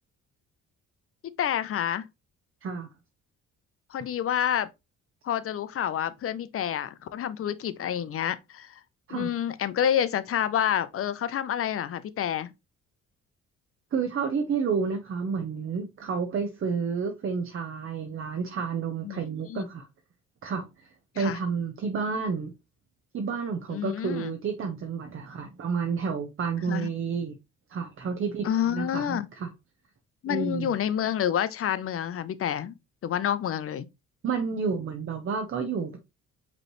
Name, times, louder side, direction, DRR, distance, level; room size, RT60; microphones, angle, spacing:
voice 1, 1.2-2.1 3.9-4.7 5.2-8.8 9.1-12.5 19.0-19.7 21.2-21.4 23.7-24.3 26.7-26.9 28.4-29.3 30.2-32.7 33.0-33.9, left 10 dB, 50° left, 0.5 m, -28 dB
voice 2, 13.9-19.9 20.4-20.9 21.2-22.5 23.1-27.4 27.7-29.5 30.3-30.8 34.2-36.0, right 5 dB, 45° right, 0.8 m, -30 dB
5.1 x 3.2 x 2.9 m
cardioid pair, 90°, 30 cm